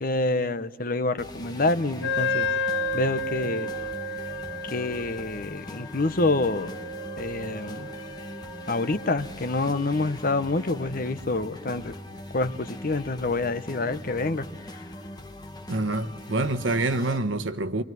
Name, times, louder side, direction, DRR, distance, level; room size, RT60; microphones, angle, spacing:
voice 1, 0.0-2.5 2.9-3.7 4.6-6.8 7.2-7.9 8.7-12.0 12.3-14.5 14.7-14.8, left 2 dB, 50° left, 1.1 m, -27 dB
sound 1, 1.2-17.2, left 1 dB, 20° left, 1.4 m, -41 dB
Wind instrument woodwind instrument, 2.0-9.4, left 2 dB, 85° left, 2.1 m, -32 dB
voice 2, 15.7-17.8, right 2 dB, 85° right, 1.2 m, -26 dB
25.0 x 24.5 x 9.4 m
head